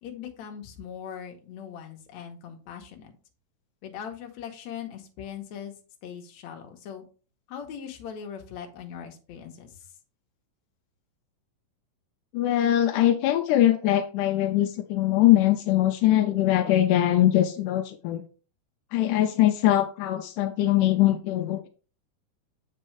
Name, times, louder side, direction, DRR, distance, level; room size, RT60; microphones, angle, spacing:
voice 1, 0.0-3.1 3.8-5.7 6.0-7.0 7.5-9.8, left 8 dB, 65° left, 3 dB, 2.3 m, -40 dB
voice 2, 12.3-18.3 18.9-21.7, left 13 dB, 85° left, 6 dB, 2.1 m, -22 dB
7.7 x 5.4 x 3.2 m, 0.37 s
omnidirectional pair, 3.7 m